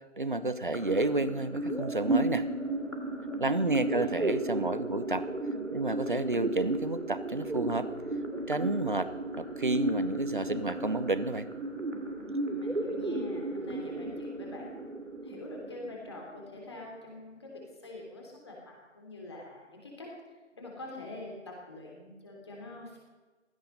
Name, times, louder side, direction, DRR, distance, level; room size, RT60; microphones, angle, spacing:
voice 1, 0.2-2.5 3.4-5.3 5.7-7.9 8.5-9.1 9.4-11.5, right 2 dB, 40° right, 13 dB, 0.9 m, -30 dB
sound 1, 0.7-16.7, right 2 dB, 75° right, 2.6 m, -34 dB
voice 2, 3.5-4.1 12.4-14.7 15.2-20.1 20.5-23.0, left 2 dB, 20° left, -1 dB, 3.4 m, -45 dB
16.0 x 16.0 x 5.5 m, 1.3 s
figure-of-eight pair, 165°, 37 cm